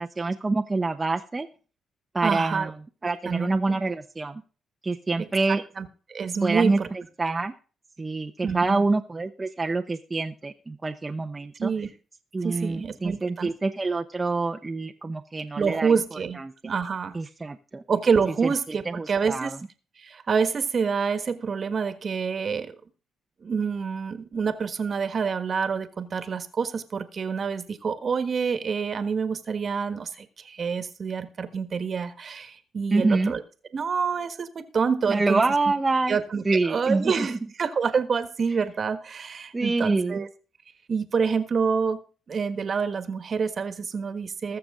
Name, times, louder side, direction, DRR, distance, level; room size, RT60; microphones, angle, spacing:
voice 1, 0.0-1.5 2.1-2.8 3.0-4.4 4.8-5.6 6.4-7.5 8.0-11.7 12.3-16.0 16.4-16.7 17.1-17.8 18.4-19.6 32.9-33.3 35.1-36.2 36.4-37.4 39.5-40.2, right 3 dB, 20° right, 4 dB, 0.8 m, -26 dB
voice 2, 2.2-2.7 3.2-3.6 5.8-6.9 8.4-8.8 11.6-11.9 12.4-13.5 15.6-17.2 17.9-19.5 20.0-22.8 23.4-33.4 33.7-35.4 36.1-40.3 40.9-42.0 42.3-44.6, right 5 dB, 45° right, 11 dB, 1.4 m, -27 dB
20.5 x 6.9 x 3.7 m, 0.37 s
cardioid pair, 90°, 0 cm